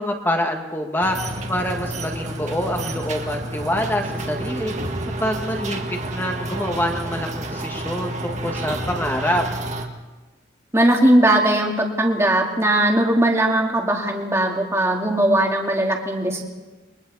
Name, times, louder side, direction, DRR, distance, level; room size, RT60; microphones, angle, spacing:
voice 1, 0.0-4.7 5.2-9.4, equal, 10° left, 3 dB, 1.8 m, -26 dB
sound 1, 1.0-9.8, right 1 dB, 40° right, 1.7 m, -30 dB
voice 2, 10.7-16.4, right 1 dB, 15° right, 1 dB, 2.2 m, -19 dB
29.5 x 23.0 x 4.2 m, 1.2 s
head